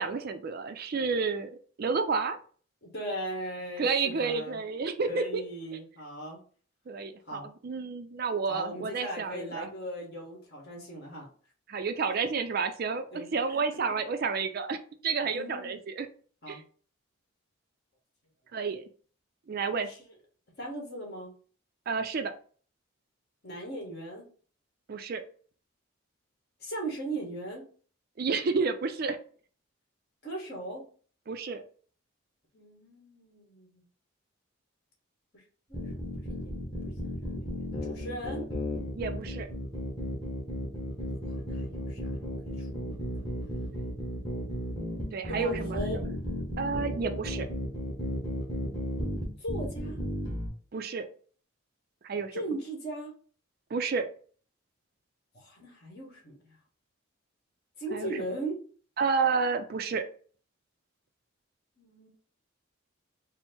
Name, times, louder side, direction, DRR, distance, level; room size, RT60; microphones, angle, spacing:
voice 1, 0.0-2.4 3.8-5.4 6.9-9.7 11.7-14.8 15.0-16.1 16.5-16.6 18.5-18.8 19.5-19.9 21.9-22.3 24.9-25.2 28.2-29.2 31.3-31.6 38.9-39.5 45.1-46.0 46.6-47.5 50.7-51.1 52.0-52.3 53.7-54.1 57.9-58.1 59.0-60.1, right 5 dB, 45° right, 8 dB, 0.4 m, -30 dB
voice 2, 2.8-4.6 5.1-6.4 7.3-7.5 8.5-11.3 13.1-13.9 15.2-15.8 16.4-16.6 19.9-20.0 20.6-21.3 23.4-24.3 26.6-27.6 30.2-30.8 32.5-33.8 35.3-35.4 35.7-38.4 41.4-43.2 45.3-46.2 49.4-50.0 52.3-53.1 55.3-56.6 57.8-58.6 61.8-62.1, right 1 dB, 50° left, -1 dB, 1.5 m, -39 dB
sound 1, 35.7-50.5, equal, 20° left, 1.3 m, -34 dB
4.4 x 2.0 x 4.3 m, 0.43 s
head